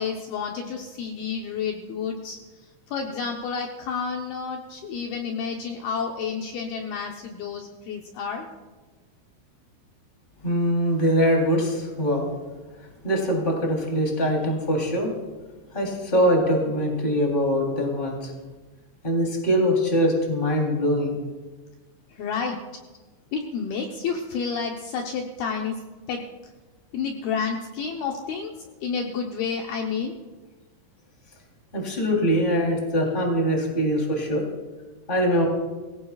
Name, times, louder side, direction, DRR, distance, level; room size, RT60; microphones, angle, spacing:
voice 1, 0.0-2.4 2.9-8.5 22.1-22.6 23.3-25.8 26.1-26.2 26.9-28.5 28.8-30.2, left 6 dB, 85° left, 1 dB, 2.1 m, -30 dB
voice 2, 10.4-12.3 13.0-15.1 15.7-18.3 19.0-21.2 31.7-34.4 35.1-35.4, equal, 15° left, 0 dB, 2.4 m, -23 dB
23.5 x 16.5 x 2.4 m, 1.2 s
omnidirectional pair, 5.8 m